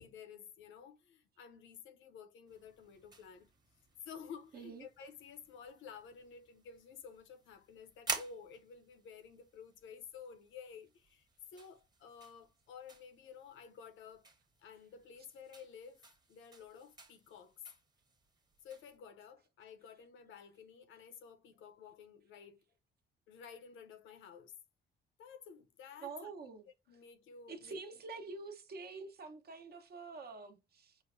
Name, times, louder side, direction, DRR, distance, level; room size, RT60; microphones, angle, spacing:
voice 1, 0.0-3.5 4.0-14.3 14.6-17.7 18.6-22.6 23.3-24.5 25.2-26.3 26.9-28.0, left 6 dB, 80° left, 0.7 m, -53 dB
sound 1, 2.5-19.0, right 3 dB, 20° right, 1.1 m, -50 dB
voice 2, 4.5-4.9 26.0-26.7 27.5-31.0, right 4 dB, 55° right, 1.0 m, -47 dB
4.8 x 2.1 x 2.6 m
cardioid pair, 90°, 20 cm